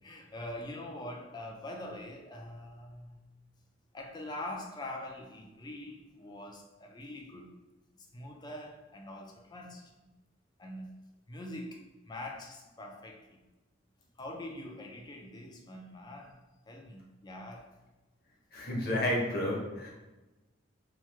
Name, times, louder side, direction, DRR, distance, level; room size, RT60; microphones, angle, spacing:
voice 1, 0.0-3.2 3.9-7.5 7.9-10.1 10.6-10.9 11.3-13.4 14.2-16.4 16.7-17.7, left 1 dB, 20° left, 1 dB, 0.4 m, -44 dB
voice 2, 18.5-19.9, left 1 dB, 50° left, -3 dB, 0.9 m, -31 dB
2.9 x 2.3 x 3.3 m, 1.1 s
head